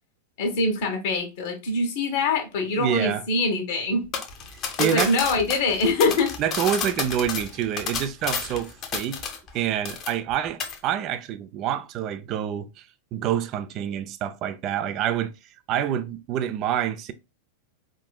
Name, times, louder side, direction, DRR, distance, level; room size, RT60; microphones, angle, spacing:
voice 1, 0.4-4.1 4.8-6.3, left 3 dB, 55° left, 1.2 m, -24 dB
voice 2, 2.7-3.2 4.8-5.1 6.0-9.3 9.5-12.8 13.1-15.3 15.7-17.1, right 10 dB, 35° right, 0.5 m, -27 dB
sound 1, 4.1-9.6 9.9-10.3 10.6-10.8, left 6 dB, 30° left, 1.0 m, -31 dB
4.8 x 3.8 x 2.2 m
figure-of-eight pair, 90°, 0 cm